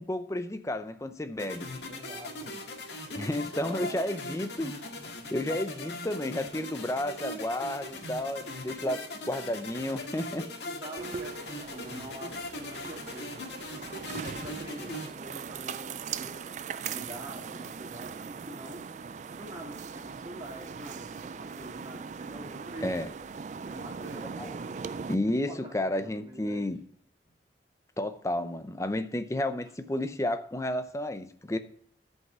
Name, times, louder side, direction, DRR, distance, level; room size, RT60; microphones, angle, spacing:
voice 1, 0.0-1.7 3.1-4.7 5.3-10.5 22.8-23.1 24.4-24.5 25.1-26.8 28.0-31.6, left 1 dB, 15° left, 0.6 m, -32 dB
sound 1, 1.4-15.1, left 2 dB, 80° left, 1.9 m, -40 dB
voice 2, 1.4-2.6 2.9-4.0 8.8-9.0 10.6-13.4 13.7-13.9 14.2-16.4 16.9-18.9 19.3-23.0 23.6-26.7, right 1 dB, 25° right, 2.5 m, -46 dB
sound 2, 11.0-25.1, right 6 dB, 40° right, 0.3 m, -40 dB
11.0 x 5.5 x 6.0 m
head